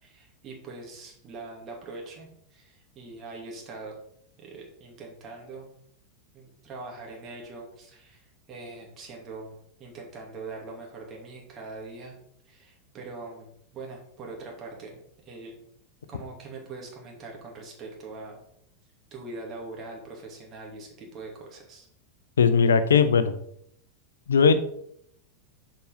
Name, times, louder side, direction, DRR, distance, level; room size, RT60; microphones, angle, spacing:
voice 1, 0.0-4.0 4.4-5.7 6.3-12.2 12.5-15.0 15.2-15.5 16.1-18.4 19.1-21.9, right 3 dB, 35° right, 0 dB, 2.7 m, -42 dB
voice 2, 22.4-23.3 24.3-24.5, left 6 dB, 70° left, 12 dB, 0.7 m, -18 dB
6.9 x 5.2 x 5.0 m, 0.70 s
figure-of-eight pair, 90°, 0 cm